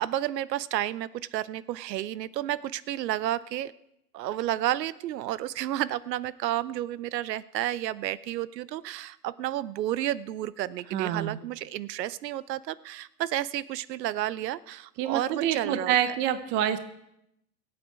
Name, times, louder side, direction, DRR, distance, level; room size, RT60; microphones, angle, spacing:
voice 1, 0.0-3.7 4.1-16.1, right 13 dB, 80° right, 19 dB, 0.7 m, -31 dB
voice 2, 10.9-11.4 15.0-16.8, right 10 dB, 25° right, 11 dB, 0.7 m, -27 dB
23.5 x 8.6 x 4.7 m, 0.81 s
supercardioid pair, 150°, 49 cm